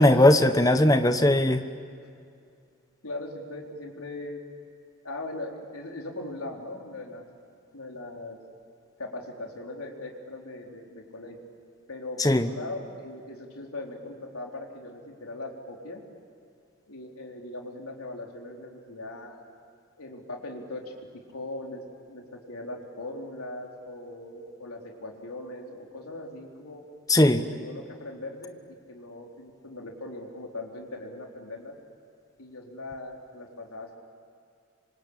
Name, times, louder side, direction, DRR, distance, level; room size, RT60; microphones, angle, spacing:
voice 1, 0.0-1.6 12.2-12.5 27.1-27.4, left 1 dB, 15° left, 9 dB, 1.0 m, -19 dB
voice 2, 3.0-4.4 5.0-7.3 7.7-8.4 9.0-11.4 11.9-16.0 16.9-19.4 20.0-26.8 27.5-31.7 32.4-33.9, left 2 dB, 85° left, 0 dB, 4.1 m, -39 dB
26.5 x 25.0 x 8.7 m, 2.4 s
head